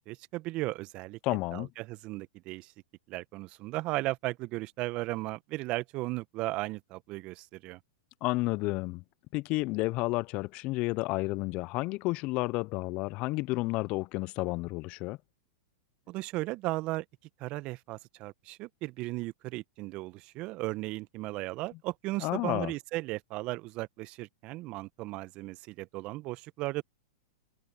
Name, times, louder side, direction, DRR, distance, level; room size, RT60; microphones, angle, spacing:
voice 1, 0.0-1.2 1.5-2.7 3.1-7.8 16.1-17.0 17.4-26.8, right 20 dB, 40° right, 1.3 m, -36 dB
voice 2, 1.2-1.7 8.2-9.0 9.3-15.2 22.2-22.7, left 22 dB, 45° left, 0.9 m, -31 dB
hypercardioid pair, 105°, 3 cm